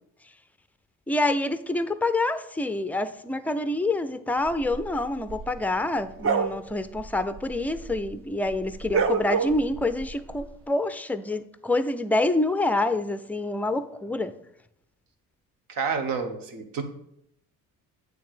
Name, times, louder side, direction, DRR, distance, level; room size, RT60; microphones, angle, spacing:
voice 1, 1.1-14.3, left 2 dB, 5° left, 0.4 m, -27 dB
sound 1, 4.5-8.2 8.4-10.5, right 6 dB, 40° right, 0.6 m, -30 dB
voice 2, 15.7-16.8, right 5 dB, 75° right, 1.3 m, -29 dB
8.6 x 3.4 x 6.3 m
cardioid pair, 115°, 34 cm